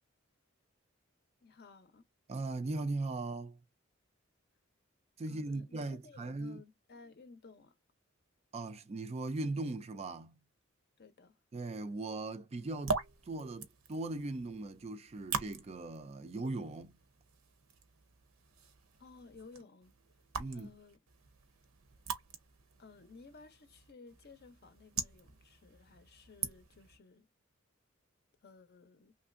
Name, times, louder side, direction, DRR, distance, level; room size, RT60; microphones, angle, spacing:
voice 1, 1.4-2.1 5.3-7.8 11.0-11.4 19.0-19.9 20.5-21.0 22.8-27.3 28.4-29.2, left 4 dB, 50° left, 0.6 m, -56 dB
voice 2, 2.3-3.6 5.2-6.6 8.5-10.4 11.5-13.0 13.3-16.9 20.4-20.7, right 2 dB, 30° right, 0.4 m, -39 dB
sound 1, 12.6-27.0, right 5 dB, 85° right, 0.7 m, -43 dB
3.1 x 2.5 x 2.4 m
head